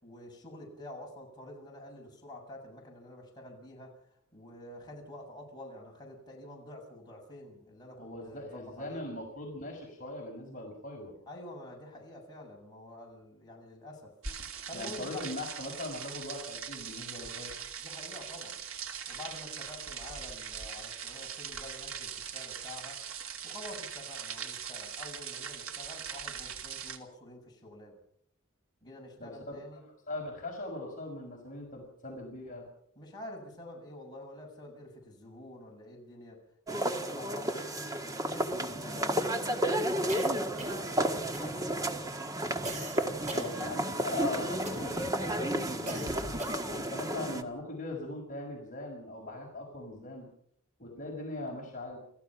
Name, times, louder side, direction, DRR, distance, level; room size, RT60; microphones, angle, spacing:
voice 1, 0.0-4.0 4.3-9.0 11.3-14.1 14.7-15.2 17.8-18.6 19.1-23.0 23.4-28.0 28.8-29.8 33.0-36.4 36.7-40.9 41.2-41.7, left 1 dB, 20° left, -1 dB, 7.3 m, -48 dB
voice 2, 8.0-11.1 14.7-17.5 29.2-32.7 43.2-46.2 46.7-50.3 50.8-52.0, left 2 dB, 40° left, 0 dB, 5.6 m, -40 dB
sound 1, 14.2-27.0, right 7 dB, 75° right, 2.7 m, -41 dB
sound 2, 36.7-47.4, right 1 dB, 15° right, 1.6 m, -32 dB
sound 3, 40.1-41.0 41.3-41.8 42.6-44.1 44.6-45.1 45.9-46.9, right 1 dB, 35° right, 4.2 m, -41 dB
29.5 x 15.0 x 5.9 m, 0.67 s
head